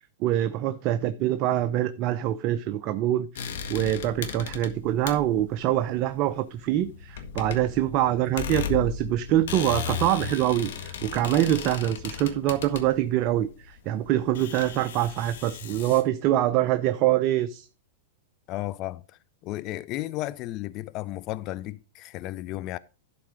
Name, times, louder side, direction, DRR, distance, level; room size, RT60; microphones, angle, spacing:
voice 1, 0.2-17.7, right 13 dB, 45° right, 0.6 m, -25 dB
sound 1, 3.4-16.0, left 8 dB, 75° left, 1.6 m, -36 dB
voice 2, 18.5-22.8, left 16 dB, 40° left, 0.4 m, -34 dB
11.5 x 4.4 x 5.1 m
hypercardioid pair, 125°, 0 cm